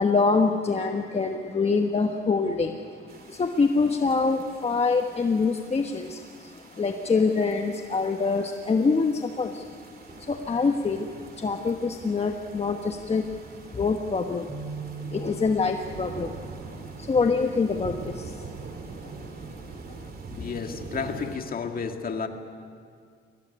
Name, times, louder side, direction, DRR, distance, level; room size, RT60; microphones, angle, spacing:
voice 1, 0.0-2.8 3.1-9.7 10.2-13.4 13.6-14.6 15.0-16.4 17.0-18.5 19.3-19.8, left 4 dB, 30° left, 4 dB, 1.3 m, -25 dB
sound 1, 3.1-21.4, right 4 dB, 50° right, 2.7 m, -44 dB
sound 2, 14.5-20.7, right 5 dB, 15° right, 5.6 m, -43 dB
voice 2, 20.3-22.3, left 5 dB, 45° left, 5 dB, 2.2 m, -32 dB
23.5 x 17.5 x 9.7 m, 2.2 s
cardioid pair, 90°, 20 cm